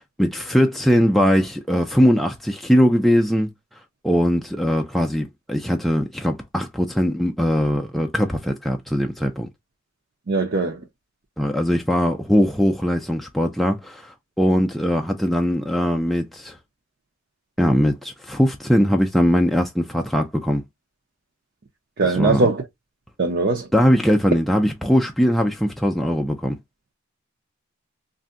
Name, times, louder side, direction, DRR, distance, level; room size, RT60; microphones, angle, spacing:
voice 1, 0.2-3.5 4.0-9.5 11.4-16.6 17.6-20.6 22.0-22.5 23.7-26.6, equal, ahead, 0.4 m, -20 dB
voice 2, 10.3-10.8 22.0-22.6 23.2-23.7, right 3 dB, 50° right, 0.5 m, -20 dB
2.6 x 2.1 x 3.6 m
head